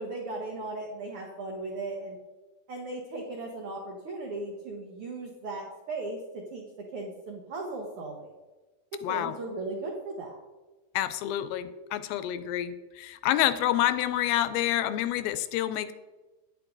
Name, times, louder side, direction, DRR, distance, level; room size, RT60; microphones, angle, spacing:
voice 1, 0.0-2.2 2.7-6.7 6.9-8.3 8.9-10.4, right 2 dB, 85° right, 0 dB, 1.2 m, -37 dB
voice 2, 9.0-9.3 11.0-15.9, left 12 dB, 85° left, 12 dB, 2.3 m, -28 dB
9.4 x 9.2 x 3.9 m, 1.2 s
omnidirectional pair, 4.3 m